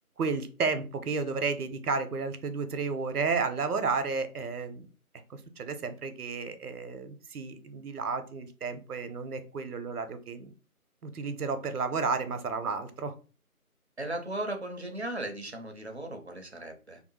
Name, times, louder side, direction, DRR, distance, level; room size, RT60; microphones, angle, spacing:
voice 1, 0.2-4.9 5.3-10.5 11.0-13.1, right 4 dB, 85° right, 9 dB, 0.7 m, -32 dB
voice 2, 14.0-17.0, right 1 dB, 50° right, 4 dB, 0.5 m, -36 dB
2.6 x 2.0 x 2.9 m, 0.35 s
figure-of-eight pair, 175°, 44 cm